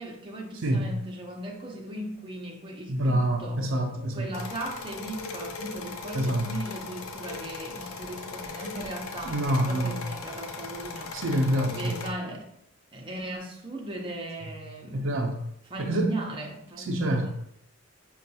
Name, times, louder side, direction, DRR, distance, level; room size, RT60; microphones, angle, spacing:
voice 1, 0.0-3.6 4.1-11.2 11.6-12.5 12.9-15.1 15.7-17.3, right 1 dB, 25° right, -1 dB, 0.6 m, -37 dB
voice 2, 2.9-4.3 6.1-6.5 9.3-10.0 11.1-12.0 14.9-15.4 15.9-16.1 16.8-17.3, right 1 dB, 65° right, 3 dB, 0.4 m, -26 dB
sound 1, 4.3-12.1, left 4 dB, 80° left, 0.5 m, -39 dB
5.3 x 2.3 x 2.7 m, 0.74 s
head